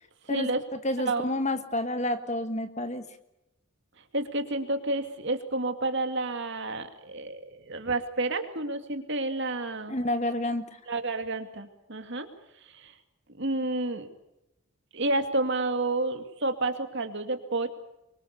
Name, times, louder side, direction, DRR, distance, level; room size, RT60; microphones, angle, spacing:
voice 1, 0.3-0.6 1.1-1.2 4.1-10.0 10.9-12.3 12.7-12.9 13.4-14.1 14.9-17.7, right 2 dB, 55° right, 7 dB, 2.5 m, -30 dB
voice 2, 0.8-3.1 9.9-10.6, left 1 dB, 30° left, 9 dB, 1.6 m, -29 dB
25.5 x 24.0 x 6.9 m, 0.88 s
head